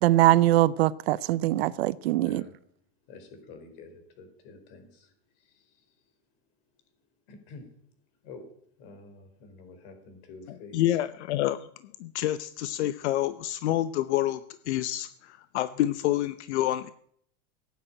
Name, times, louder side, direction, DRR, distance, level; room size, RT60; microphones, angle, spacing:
voice 1, 0.0-2.4, right 15 dB, 60° right, 0.7 m, -22 dB
voice 2, 3.1-5.1 5.4-5.8 7.3-7.6 8.2-8.4 8.8-10.8, left 4 dB, 50° left, 4.5 m, -48 dB
voice 3, 10.5-11.7 12.0-14.4 14.7-16.9, left 14 dB, 70° left, 0.8 m, -28 dB
17.0 x 9.4 x 8.9 m
supercardioid pair, 175°, 35 cm